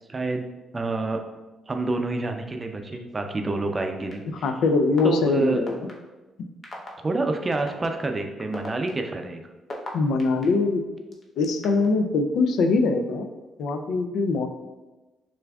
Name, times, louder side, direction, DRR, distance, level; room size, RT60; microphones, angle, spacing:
voice 1, 0.1-0.4 0.7-1.2 1.7-4.5 5.0-5.6 7.0-9.4, right 2 dB, 25° right, 4 dB, 0.5 m, -27 dB
sound 1, 4.1-4.2 5.0-5.1 5.7-5.9 6.6-6.9 7.7-7.8 8.4-10.4 11.1-11.9, left 2 dB, 45° left, 0.8 m, -37 dB
voice 2, 4.4-5.9 9.9-10.9 11.4-13.3 13.6-14.5, left 3 dB, 75° left, 6 dB, 0.4 m, -22 dB
6.6 x 2.5 x 2.3 m, 1.1 s
cardioid pair, 90°, 0 cm